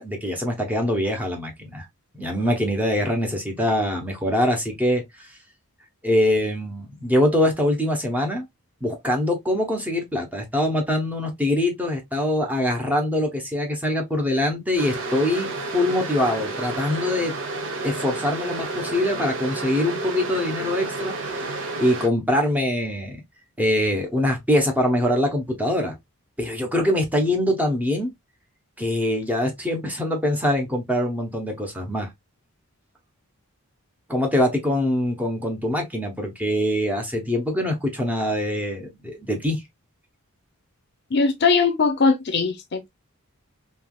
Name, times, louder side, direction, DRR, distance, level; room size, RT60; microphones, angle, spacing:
voice 1, 0.0-1.9 2.1-5.0 6.0-8.4 8.8-17.3 17.8-23.2 23.6-25.9 26.4-28.1 28.8-32.1 34.1-39.6, left 1 dB, 5° right, 0.8 m, -23 dB
sound 1, 14.8-22.1, right 3 dB, 60° right, 0.9 m, -30 dB
voice 2, 41.1-42.9, left 4 dB, 50° left, 0.6 m, -20 dB
3.3 x 2.9 x 2.2 m
head